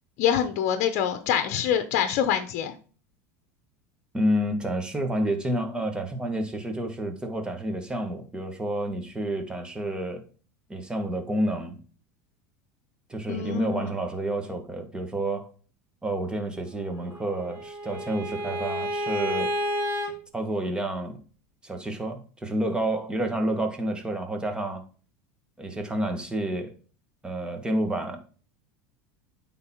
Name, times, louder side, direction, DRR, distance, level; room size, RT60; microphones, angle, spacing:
voice 1, 0.2-2.7 13.3-13.9, left 9 dB, 60° left, 9 dB, 0.9 m, -25 dB
voice 2, 4.1-10.2 10.7-11.8 13.1-15.5 16.0-19.5 20.3-21.2 21.6-24.8 25.6-26.7 27.2-28.2, right 1 dB, 10° right, 5 dB, 1.7 m, -29 dB
Bowed string instrument, 17.0-20.1, equal, 50° right, 1.8 m, -30 dB
9.5 x 4.0 x 4.5 m, 0.39 s
supercardioid pair, 115°, 8 cm